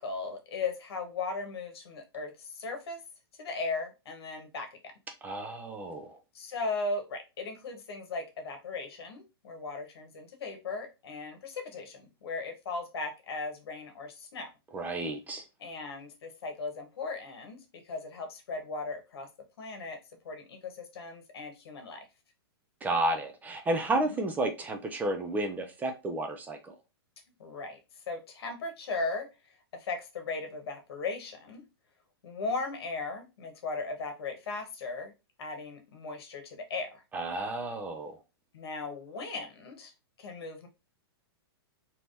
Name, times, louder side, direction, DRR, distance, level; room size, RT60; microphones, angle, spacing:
voice 1, 0.0-3.0 3.4-4.8 6.3-14.5 15.6-17.6 17.8-19.3 19.6-20.0 20.2-22.0 24.1-24.2 27.4-27.8 28.1-29.3 29.7-31.6 32.2-35.1 35.4-37.0 38.5-39.9 40.2-40.7, left 3 dB, 75° left, 1.2 m, -37 dB
voice 2, 5.2-6.2 14.7-15.4 22.8-26.7 37.1-38.2, right 2 dB, 10° right, 0.4 m, -32 dB
3.4 x 3.0 x 2.6 m
hypercardioid pair, 145°, 13 cm